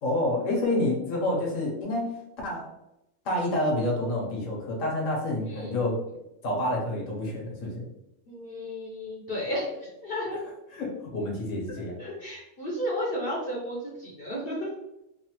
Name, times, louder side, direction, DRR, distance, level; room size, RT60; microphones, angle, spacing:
voice 1, 0.0-2.1 2.4-2.7 3.2-6.0 6.4-7.9 10.7-12.0, left 1 dB, 80° left, -1 dB, 1.2 m, -28 dB
voice 2, 8.3-10.4 12.0-14.7, equal, 55° left, -4 dB, 0.8 m, -33 dB
3.1 x 2.1 x 2.9 m, 0.88 s
omnidirectional pair, 1.3 m